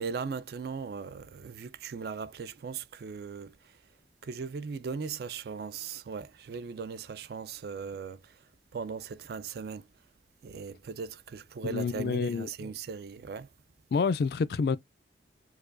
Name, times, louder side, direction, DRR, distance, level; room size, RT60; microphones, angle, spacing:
voice 1, 0.0-3.8 4.2-8.5 8.7-9.9 10.4-13.5, right 5 dB, 60° right, 0.3 m, -38 dB
voice 2, 11.7-12.7 13.9-14.8, left 5 dB, 60° left, 0.3 m, -28 dB
4.7 x 2.2 x 2.5 m
head